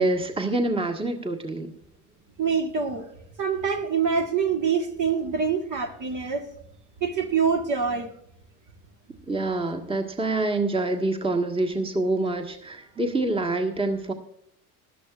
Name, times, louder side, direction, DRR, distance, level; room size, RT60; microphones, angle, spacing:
voice 1, 0.0-1.7 9.3-14.1, right 2 dB, 10° right, 3 dB, 1.5 m, -26 dB
voice 2, 2.4-3.1 3.4-6.5 7.0-8.1, right 6 dB, 45° right, 3 dB, 1.6 m, -25 dB
18.5 x 12.0 x 2.4 m, 0.73 s
hypercardioid pair, 65°, 44 cm